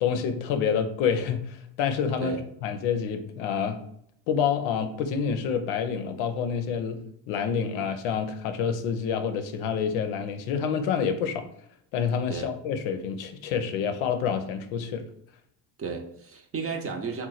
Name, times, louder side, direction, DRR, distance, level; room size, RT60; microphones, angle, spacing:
voice 1, 0.0-3.8 4.3-11.5 11.9-15.0, left 7 dB, 85° left, 7 dB, 0.6 m, -28 dB
voice 2, 15.8-17.3, right 5 dB, 30° right, 3 dB, 0.6 m, -33 dB
3.0 x 2.3 x 3.9 m, 0.71 s
supercardioid pair, 75°, 47 cm